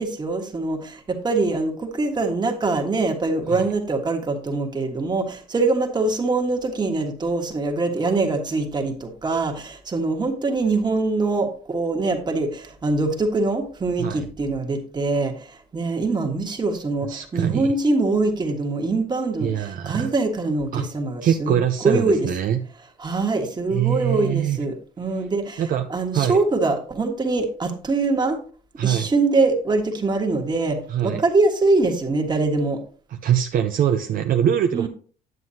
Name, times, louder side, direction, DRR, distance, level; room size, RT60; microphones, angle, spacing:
voice 1, 0.0-21.6 21.8-22.3 23.0-25.6 25.9-28.4 28.8-32.8 34.7-34.9, right 3 dB, 25° right, 4 dB, 1.6 m, -23 dB
voice 2, 17.1-17.6 19.4-20.1 20.7-20.8 21.2-22.6 23.7-24.6 25.6-25.9 26.1-26.4 28.8-29.1 30.9-31.2 33.1-34.9, right 9 dB, 55° right, 6 dB, 0.6 m, -23 dB
9.3 x 7.7 x 2.8 m, 0.42 s
cardioid pair, 110°, 17 cm